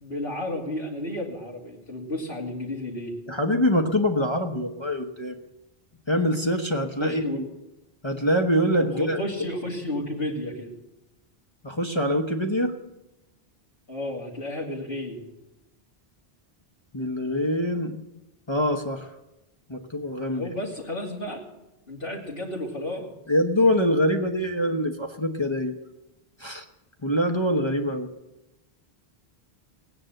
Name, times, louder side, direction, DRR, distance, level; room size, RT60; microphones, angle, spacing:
voice 1, 0.0-3.1 7.0-7.4 8.8-10.7 13.9-15.3 20.3-21.4 21.9-23.1, left 1 dB, 65° left, -6 dB, 2.9 m, -32 dB
voice 2, 3.3-5.3 6.1-7.2 8.0-9.2 11.6-12.7 16.9-18.1 18.5-19.1 19.7-20.5 23.3-25.7 26.4-26.6 27.0-28.1, equal, 25° left, 2 dB, 1.2 m, -24 dB
18.5 x 9.7 x 7.8 m, 0.95 s
omnidirectional pair, 1.1 m